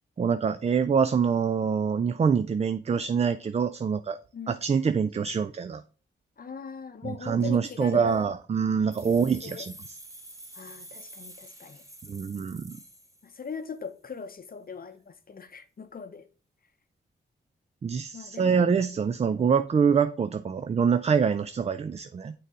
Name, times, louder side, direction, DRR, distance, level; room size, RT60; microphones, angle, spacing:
voice 1, 0.2-4.2 4.5-5.8 7.0-9.7 12.1-12.7 17.8-22.3, right 6 dB, 35° right, 0.4 m, -25 dB
voice 2, 6.4-8.3 9.0-9.7 10.5-11.8 13.2-16.2 18.1-18.7, left 6 dB, 50° left, 0.7 m, -40 dB
sound 1, 8.9-13.7, right 1 dB, 15° right, 1.7 m, -48 dB
6.5 x 4.0 x 4.7 m
cardioid pair, 65°, 20 cm